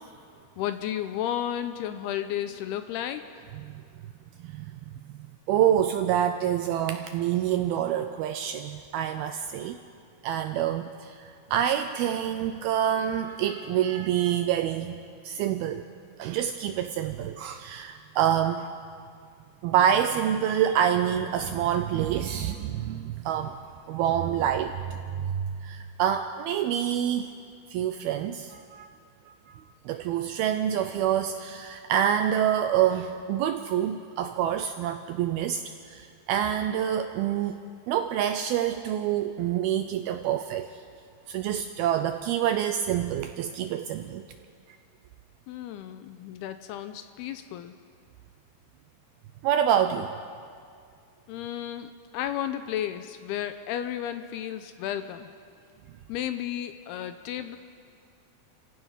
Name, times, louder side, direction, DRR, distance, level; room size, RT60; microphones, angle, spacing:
voice 1, 0.6-3.4 45.5-47.7 51.3-55.3 56.1-57.6, left 11 dB, 80° left, 9 dB, 2.4 m, -33 dB
voice 2, 4.4-4.8 5.5-9.8 10.2-15.8 16.2-18.7 19.6-23.6 23.9-27.3 27.7-28.9 29.3-40.8 41.3-44.2 49.4-50.1, right 10 dB, 85° right, 8 dB, 2.2 m, -27 dB
29.5 x 16.5 x 5.7 m, 2.3 s
omnidirectional pair, 5.0 m